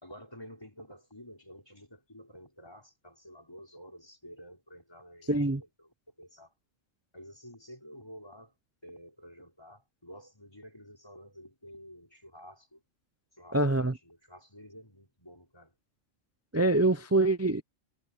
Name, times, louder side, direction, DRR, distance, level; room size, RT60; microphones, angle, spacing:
voice 1, 0.0-6.5 7.1-8.5 8.8-12.8 13.3-15.7, equal, 20° left, 5.5 m, -51 dB
voice 2, 5.3-5.6 13.5-13.9 16.5-17.6, right 2 dB, 25° right, 0.3 m, -25 dB
omnidirectional pair, 1.3 m